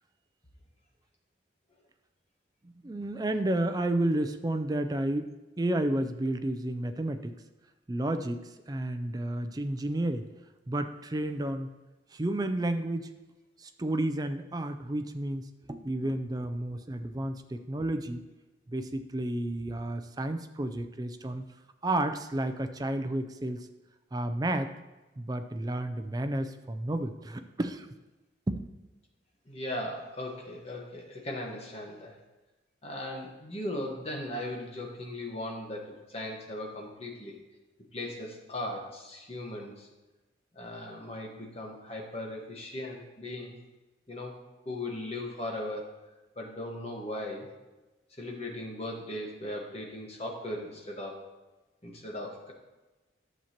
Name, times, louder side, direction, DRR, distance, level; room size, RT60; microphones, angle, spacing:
voice 1, 2.6-5.3 5.6-7.4 7.9-10.3 10.7-11.7 12.1-13.1 13.6-18.2 18.7-21.5 21.8-23.7 24.1-24.7 25.2-27.9 28.5-28.7, right 1 dB, 20° right, 8 dB, 0.4 m, -31 dB
voice 2, 29.5-32.2 32.8-37.4 37.9-39.9 40.5-43.6 44.1-45.9 46.4-47.5 48.2-51.2 51.8-52.5, left 1 dB, 30° left, 0 dB, 1.4 m, -38 dB
11.0 x 7.3 x 2.9 m, 1.1 s
head